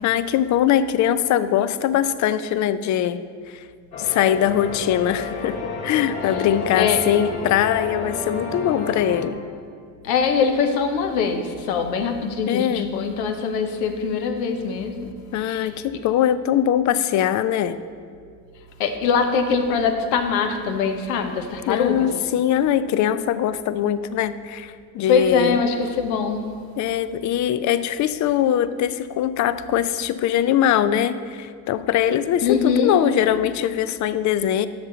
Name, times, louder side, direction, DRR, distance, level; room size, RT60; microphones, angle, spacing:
voice 1, 0.0-3.6 4.0-5.6 5.8-9.4 12.5-12.9 15.3-17.8 21.7-25.6 26.8-34.7, left 10 dB, 40° left, 13 dB, 0.5 m, -22 dB
sound 1, 3.9-9.3, left 3 dB, 60° left, 2.3 m, -30 dB
voice 2, 10.0-15.1 15.4-15.7 18.8-22.1 25.1-26.5 32.4-33.0, left 5 dB, 80° left, 6 dB, 1.0 m, -22 dB
10.5 x 6.8 x 3.8 m, 2.2 s
hypercardioid pair, 70°, 50 cm